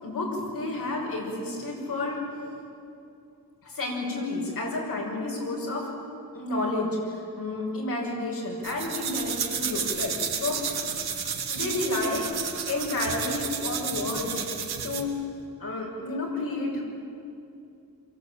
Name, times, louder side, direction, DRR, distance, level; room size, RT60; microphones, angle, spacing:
voice 1, 0.0-2.2 3.6-5.9 6.3-10.6 11.4-12.3 12.7-15.1 15.6-16.8, left 2 dB, 65° left, -4 dB, 6.5 m, -31 dB
sound 1, 8.6-15.1, right 6 dB, 85° right, 3.4 m, -32 dB
27.5 x 23.0 x 9.2 m, 2.7 s
wide cardioid pair, 150°, 37 cm